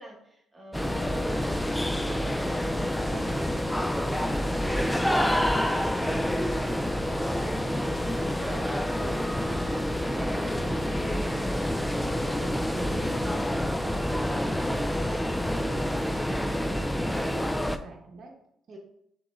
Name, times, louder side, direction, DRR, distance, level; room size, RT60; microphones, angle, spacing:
voice 1, 0.0-4.3 4.6-8.6 13.9-14.2 15.5-15.7 18.7-18.8, equal, 20° right, -2 dB, 1.5 m, -47 dB
sound 1, 0.7-17.8, equal, 5° left, 0.3 m, -28 dB
voice 2, 3.0-3.4 4.6-5.0 8.4-13.5 13.8-15.1 15.5-18.3 18.7-18.8, right 2 dB, 55° right, 1 dB, 0.9 m, -45 dB
6.0 x 3.0 x 2.4 m, 0.73 s
cardioid pair, 90°, 0 cm